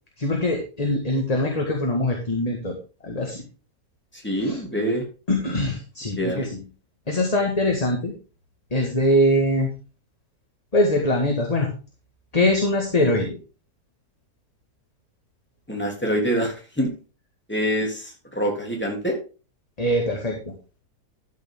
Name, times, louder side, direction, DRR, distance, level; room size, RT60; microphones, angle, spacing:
voice 1, 0.2-2.8 3.0-3.4 4.4-4.6 5.3-6.6 7.1-8.1 8.7-9.7 10.7-11.7 12.3-13.4 19.8-20.5, left 1 dB, 25° left, 0 dB, 1.8 m, -22 dB
voice 2, 4.2-5.0 6.2-6.5 15.7-16.9 17.5-19.1, equal, 5° left, 0 dB, 3.3 m, -25 dB
13.0 x 6.8 x 3.8 m, 0.34 s
omnidirectional pair, 1.8 m